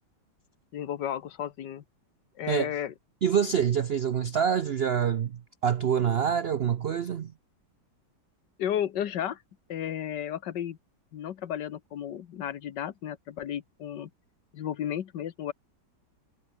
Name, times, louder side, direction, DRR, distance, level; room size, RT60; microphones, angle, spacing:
voice 1, 0.7-1.8 2.4-2.9 8.6-9.4 9.7-10.8 11.1-14.1 14.5-15.5, left 10 dB, 80° left, 1.7 m, -33 dB
voice 2, 3.2-7.3, right 8 dB, 70° right, 0.6 m, -26 dB
omnidirectional pair, 1.9 m